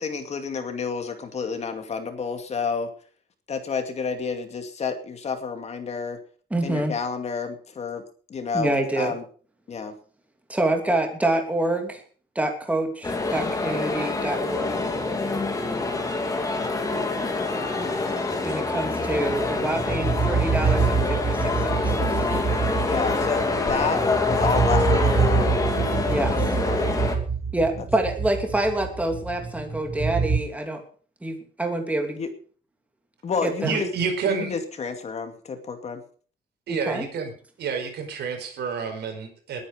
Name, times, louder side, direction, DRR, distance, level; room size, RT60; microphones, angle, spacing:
voice 1, 0.0-2.9 3.5-6.2 6.6-8.0 8.3-9.2 9.7-9.9 22.8-24.0 24.3-25.5 26.2-26.9 32.2-32.3 33.2-33.9 34.3-36.0, left 5 dB, 40° left, 7 dB, 2.4 m, -30 dB
voice 2, 6.5-6.9 8.5-9.1 10.5-12.0 12.3-14.8 18.4-21.8 22.1-22.3 26.1-26.4 27.5-30.8 31.2-32.2 33.4-33.8 36.7-37.1, right 1 dB, 10° right, 3 dB, 2.9 m, -26 dB
sound 1, 13.0-27.2, left 3 dB, 20° left, 2.8 m, -26 dB
sound 2, 19.3-30.4, right 5 dB, 35° right, 5.7 m, -26 dB
voice 3, 33.6-34.5 36.7-37.3 37.6-39.6, right 6 dB, 70° right, 6 dB, 4.8 m, -28 dB
20.5 x 9.8 x 5.1 m, 0.42 s
cardioid pair, 155°, 18 cm